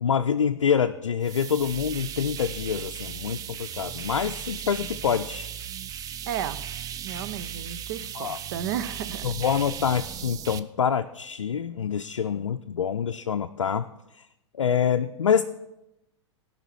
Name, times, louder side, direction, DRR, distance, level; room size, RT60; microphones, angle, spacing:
voice 1, 0.0-5.5 8.2-8.4 9.2-13.9 14.1-14.3 14.5-15.4, left 7 dB, 80° left, 7 dB, 0.4 m, -26 dB
sound 1, 1.2-10.6, right 9 dB, 25° right, 0.4 m, -37 dB
voice 2, 6.3-6.6 7.0-9.3, right 10 dB, 50° right, 13 dB, 0.7 m, -33 dB
17.0 x 5.7 x 4.6 m, 0.89 s
figure-of-eight pair, 100°, 15 cm